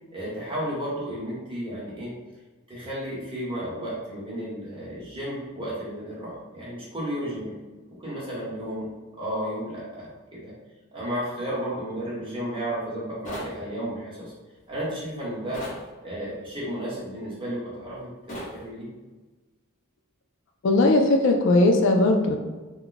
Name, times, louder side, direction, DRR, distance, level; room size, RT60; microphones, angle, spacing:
voice 1, 0.1-2.1 2.7-7.5 7.9-8.9 9.2-10.5 10.9-14.3 14.7-15.6 16.0-18.9, equal, 25° right, -7 dB, 1.0 m, -33 dB
sound 1, 13.2-13.6 15.5-15.8 18.3-18.6, equal, 35° left, 0.8 m, -35 dB
voice 2, 20.6-22.4, left 2 dB, 60° left, 3 dB, 0.3 m, -19 dB
2.3 x 2.1 x 3.8 m, 1.2 s
head